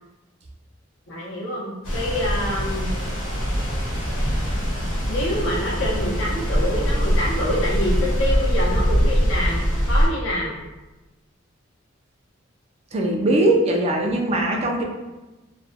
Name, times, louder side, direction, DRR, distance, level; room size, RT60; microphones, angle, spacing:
voice 1, 1.1-2.9 5.1-10.6, left 1 dB, 70° left, -5 dB, 0.7 m, -26 dB
sound 1, 1.8-10.1, equal, 85° left, 1.0 m, -22 dB
voice 2, 12.9-14.8, right 1 dB, 30° right, 0 dB, 0.3 m, -20 dB
2.4 x 2.1 x 2.5 m, 1.1 s
head